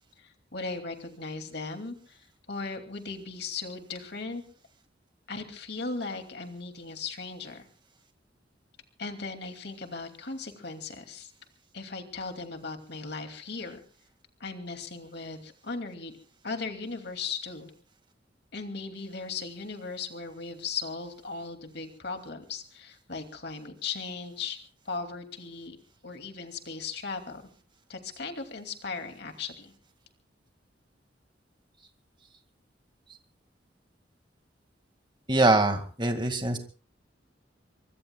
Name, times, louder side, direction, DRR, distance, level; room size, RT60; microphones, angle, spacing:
voice 1, 0.2-4.4 5.3-7.6 9.0-11.3 11.7-13.8 14.4-16.1 16.4-17.7 18.5-24.6 24.8-25.8 26.0-27.4 27.9-29.7, left 4 dB, 60° left, 5 dB, 2.6 m, -37 dB
voice 2, 35.3-36.6, right 2 dB, 25° right, 6 dB, 2.0 m, -23 dB
24.5 x 23.0 x 2.3 m, 0.39 s
head